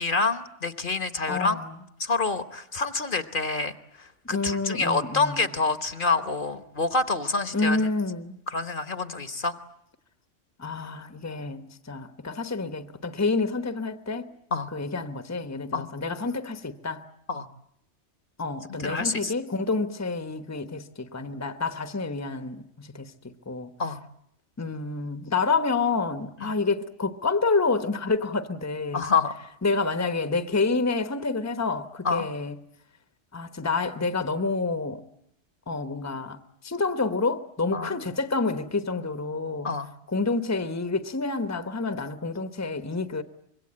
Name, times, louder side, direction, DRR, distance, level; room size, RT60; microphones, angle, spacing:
voice 1, 0.0-1.6 2.0-3.7 4.0-7.8 8.5-9.6 14.5-14.7 15.7-15.9 17.3-17.5 18.8-19.3 23.8-24.0 28.9-29.3 32.0-32.3 37.7-38.0 39.6-39.9, left 4 dB, 45° left, 1.3 m, -27 dB
voice 2, 1.3-1.8 4.3-5.5 7.5-8.4 10.6-14.3 14.7-17.1 18.4-23.7 24.6-29.1 29.6-32.6 33.3-35.0 35.7-39.7 40.1-43.2, left 3 dB, 15° left, 1.0 m, -28 dB
25.0 x 22.5 x 8.7 m
omnidirectional pair, 1.2 m